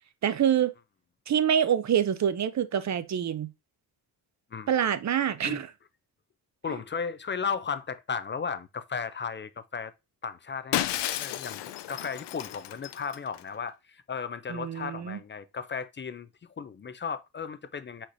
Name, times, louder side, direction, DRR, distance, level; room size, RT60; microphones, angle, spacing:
voice 1, 0.2-0.7 1.3-3.5 4.7-5.7 14.5-15.2, right 9 dB, 45° right, 0.5 m, -26 dB
voice 2, 6.6-9.9 10.2-16.3 16.6-18.1, left 6 dB, 30° left, 0.4 m, -35 dB
Shatter, 10.7-13.4, left 13 dB, 85° left, 0.5 m, -32 dB
4.7 x 4.3 x 2.5 m
cardioid pair, 90°, 41 cm